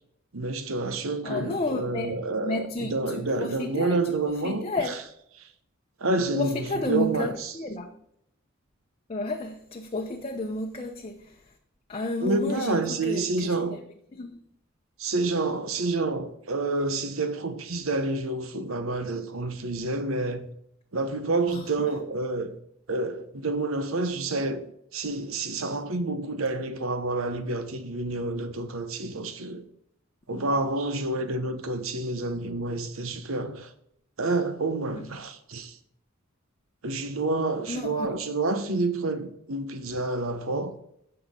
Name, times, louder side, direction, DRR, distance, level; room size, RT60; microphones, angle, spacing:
voice 1, 0.3-4.7 5.4-5.5 6.0-7.5 12.2-13.8 15.0-20.5 20.9-22.6 22.9-24.7 24.9-29.6 30.3-33.7 34.2-35.8 36.8-40.7, right 2 dB, 75° right, 1.1 m, -28 dB
voice 2, 1.2-5.0 6.3-8.0 9.1-11.6 11.9-13.5 14.1-14.4 21.5-21.9 28.3-28.5 34.9-35.1 37.7-38.1, left 2 dB, 30° left, 0.8 m, -32 dB
15.5 x 6.0 x 3.8 m
head